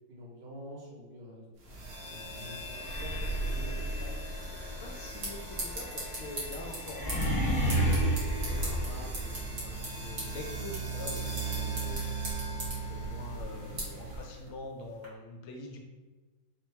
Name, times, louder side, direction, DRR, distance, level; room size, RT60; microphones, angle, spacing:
voice 1, 0.1-1.5 2.0-4.1 13.6-13.8, equal, 85° right, -5 dB, 2.2 m, -47 dB
sound 1, 1.6-14.5, right 3 dB, 60° right, 1.0 m, -39 dB
sound 2, 2.8-9.7, right 1 dB, 15° left, 0.8 m, -32 dB
sound 3, 4.6-15.1, right 1 dB, 45° right, 1.4 m, -42 dB
voice 2, 4.8-7.9 8.4-15.8, left 3 dB, 80° left, 2 dB, 1.5 m, -45 dB
4.4 x 2.2 x 4.4 m, 1.3 s
omnidirectional pair, 2.3 m